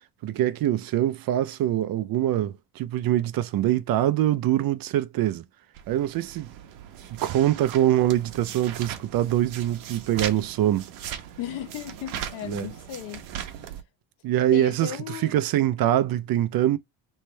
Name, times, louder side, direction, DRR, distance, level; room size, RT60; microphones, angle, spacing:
voice 1, 0.2-5.4 5.9-6.5 7.1-10.9 12.4-12.7 14.2-16.8, right 12 dB, 50° right, 0.5 m, -24 dB
sound 1, 5.7-13.8, right 10 dB, 90° right, 0.9 m, -39 dB
voice 2, 11.4-13.2 14.5-15.4, left 12 dB, 80° left, 1.1 m, -35 dB
3.2 x 3.2 x 4.3 m
cardioid pair, 115°, 46 cm